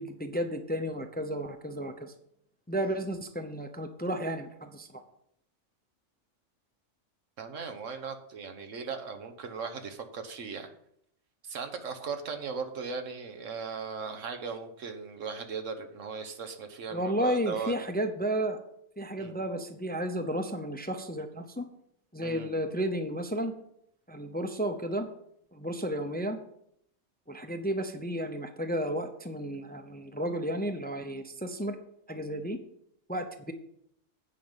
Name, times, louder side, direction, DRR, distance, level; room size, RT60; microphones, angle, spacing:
voice 1, 0.0-2.1 2.7-4.9 16.9-18.6 19.0-21.6 22.1-23.5 24.1-25.1 25.5-26.4 27.3-31.8 32.1-32.6 33.1-33.5, right 1 dB, 10° left, 7 dB, 0.5 m, -32 dB
voice 2, 7.4-10.7 11.4-17.7 19.2-19.4 22.2-22.5, right 5 dB, 85° right, 7 dB, 1.5 m, -38 dB
9.1 x 5.3 x 7.3 m, 0.72 s
omnidirectional pair, 1.3 m